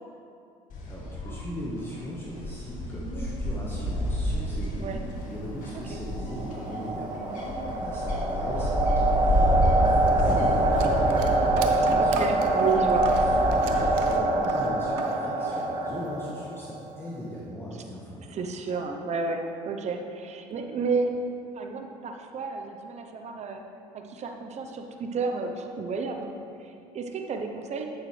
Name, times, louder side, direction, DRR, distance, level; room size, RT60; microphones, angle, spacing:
sound 1, 0.7-13.9, equal, 60° left, 1.8 m, -30 dB
voice 1, 0.9-4.9 5.2-7.2 7.6-12.2 13.4-18.3, equal, 15° left, -6 dB, 1.5 m, -38 dB
sound 2, 5.9-16.8, right 2 dB, 25° right, 1.1 m, -25 dB
sound 3, 10.1-15.2 15.4-16.3, right 7 dB, 85° right, 0.6 m, -39 dB
voice 2, 12.0-13.1 18.3-21.1 21.5-23.6 23.9-26.3 26.6-27.8, right 4 dB, 45° right, 3 dB, 0.9 m, -31 dB
8.8 x 7.2 x 3.4 m, 2.5 s
supercardioid pair, 70°, 16 cm